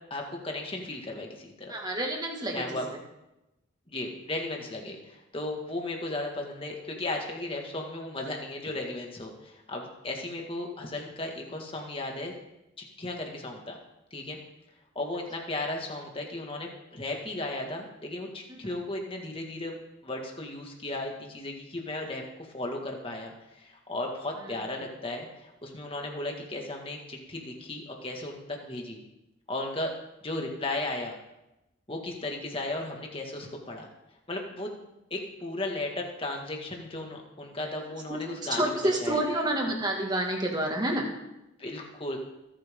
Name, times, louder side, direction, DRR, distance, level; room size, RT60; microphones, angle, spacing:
voice 1, 0.1-1.7 2.5-2.9 3.9-12.3 13.0-13.8 14.1-14.4 15.0-19.8 20.0-29.0 29.5-29.9 30.2-31.1 31.9-33.9 34.3-34.7 35.1-38.6 39.0-39.2 41.6-42.2, left 2 dB, 25° left, 1 dB, 2.0 m, -35 dB
voice 2, 1.7-2.8 18.5-18.8 24.4-24.6 38.1-41.1, right 1 dB, 20° right, 1 dB, 2.1 m, -29 dB
23.0 x 8.9 x 3.8 m, 0.93 s
head